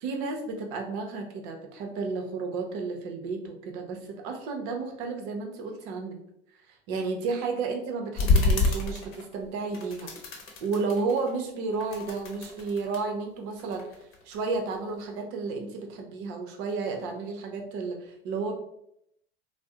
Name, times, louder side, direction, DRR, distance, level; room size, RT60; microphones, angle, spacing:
voice 1, 0.0-6.2 6.7-10.1 10.6-14.0 14.3-18.5, right 4 dB, 55° right, 3 dB, 0.8 m, -32 dB
RG Birds Fly, 8.2-9.5 9.7-11.4 11.7-13.0 13.6-14.8, left 3 dB, 40° left, 0.8 m, -28 dB
2.6 x 2.1 x 3.5 m, 0.75 s
hypercardioid pair, 90°, 32 cm